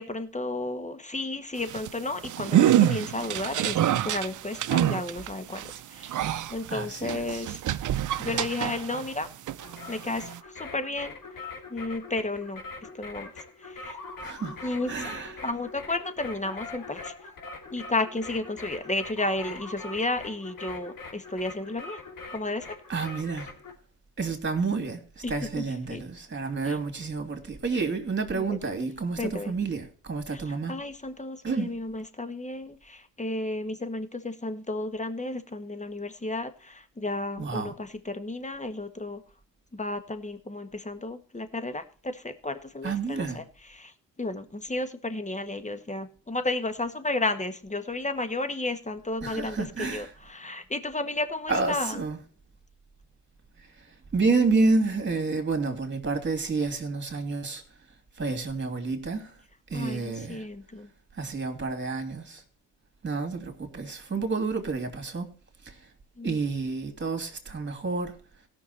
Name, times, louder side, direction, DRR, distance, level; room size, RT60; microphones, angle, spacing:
voice 1, 0.0-6.2 6.5-7.6 8.2-9.3 9.9-11.2 11.7-12.6 13.0-13.3 13.6-14.0 14.6-17.1 17.7-22.0 22.3-22.7 25.2-25.6 25.9-26.0 26.7-26.8 28.3-28.6 29.2-29.5 30.3-39.2 39.7-43.4 43.7-43.9 44.2-52.0 59.7-60.9 66.2-66.4, left 2 dB, 20° left, 1.7 m, -33 dB
sound 1, 1.6-9.2 9.5-10.4, right 11 dB, 55° right, 0.7 m, -26 dB
voice 2, 6.7-7.4 14.2-14.5 14.9-15.3 22.9-23.5 24.2-30.7 31.4-31.8 37.4-37.7 42.8-43.4 49.2-50.1 51.5-52.2 54.1-57.6 58.2-59.3 59.7-60.4 61.2-62.4 63.0-65.3 65.6-65.8 66.2-68.2, right 4 dB, 30° right, 2.9 m, -29 dB
sound 2, 9.6-23.7, left 3 dB, 60° left, 2.9 m, -42 dB
17.0 x 6.2 x 4.4 m
supercardioid pair, 55°, 37 cm